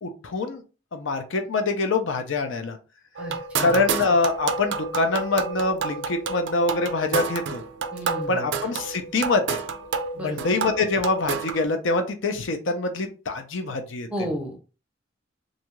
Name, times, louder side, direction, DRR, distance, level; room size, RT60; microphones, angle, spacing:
voice 1, 0.0-0.6 0.9-2.8 3.6-7.6 8.3-9.6 10.2-14.1, left 3 dB, 75° left, 6 dB, 0.5 m, -25 dB
voice 2, 3.2-3.8 7.9-8.5 10.2-10.4 14.1-14.7, right 1 dB, 5° right, 1 dB, 0.6 m, -33 dB
sound 1, 3.2-11.6, right 5 dB, 70° right, 0.3 m, -30 dB
2.6 x 2.3 x 2.9 m, 0.33 s
head